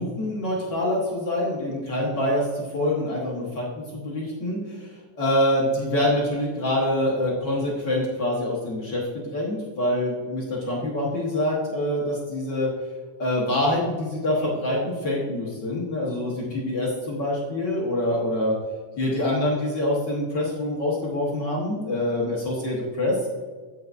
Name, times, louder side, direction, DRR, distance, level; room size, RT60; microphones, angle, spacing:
voice 1, 0.0-3.6 3.9-12.7 13.2-18.5 19.0-23.2, left 1 dB, 55° left, -4 dB, 1.2 m, -25 dB
8.5 x 7.9 x 2.5 m, 1.5 s
omnidirectional pair, 3.5 m